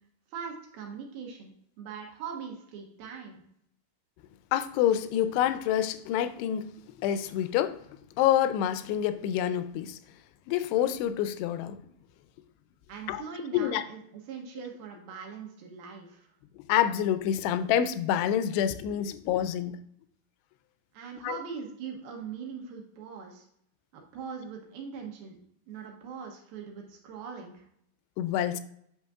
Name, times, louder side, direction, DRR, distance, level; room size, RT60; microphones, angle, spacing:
voice 1, 0.3-1.5 1.8-3.4 12.9-16.3 20.9-23.5 23.9-25.4 25.7-27.7, right 6 dB, 75° right, 1 dB, 2.5 m, -41 dB
voice 2, 4.5-6.7 7.0-7.8 8.2-10.0 10.5-11.8 13.1-13.2 13.5-13.8 16.7-19.8 21.2-21.4 28.2-28.6, left 10 dB, 85° left, 11 dB, 2.6 m, -27 dB
8.2 x 6.2 x 2.3 m, 0.70 s
omnidirectional pair, 4.8 m